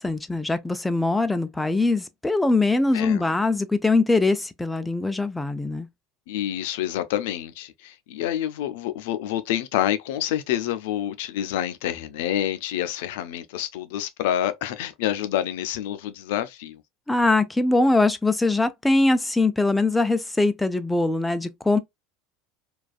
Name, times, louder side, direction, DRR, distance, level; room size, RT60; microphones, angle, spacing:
voice 1, 0.0-5.9 17.1-21.8, left 2 dB, 5° left, 0.3 m, -22 dB
voice 2, 6.3-16.8, left 11 dB, 80° left, 0.4 m, -28 dB
2.5 x 2.3 x 2.3 m
supercardioid pair, 120°, 0 cm